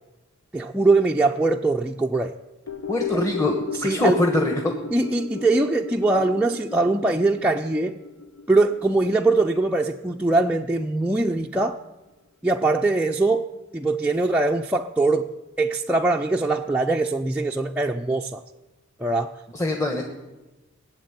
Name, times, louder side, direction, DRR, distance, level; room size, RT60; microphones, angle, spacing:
voice 1, 0.5-2.4 3.1-3.2 3.8-4.2 4.9-8.0 8.5-11.8 12.4-15.3 15.6-18.4 19.0-19.3, right 2 dB, 5° right, 0 dB, 0.4 m, -22 dB
sound 1, 2.7-11.1 11.4-11.5, left 5 dB, 80° left, 0.9 m, -36 dB
voice 2, 2.9-4.7 19.5-20.0, left 2 dB, 15° left, 2 dB, 1.3 m, -23 dB
19.5 x 7.7 x 9.6 m, 1.1 s
head